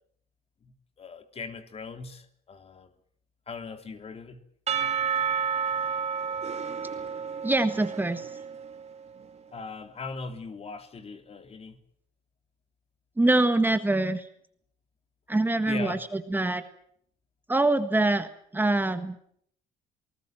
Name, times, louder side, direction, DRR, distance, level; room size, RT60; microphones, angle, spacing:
voice 1, 0.6-2.9 3.5-4.4 9.5-11.8 15.6-16.0, left 4 dB, 35° left, 3.3 m, -40 dB
Percussion / Church bell, 4.7-8.8, right 6 dB, 40° right, 2.5 m, -30 dB
voice 2, 7.4-8.4 13.2-14.3 15.3-16.6 17.5-19.2, right 2 dB, 10° right, 1.6 m, -25 dB
27.5 x 19.5 x 7.6 m
cardioid pair, 110°, 17 cm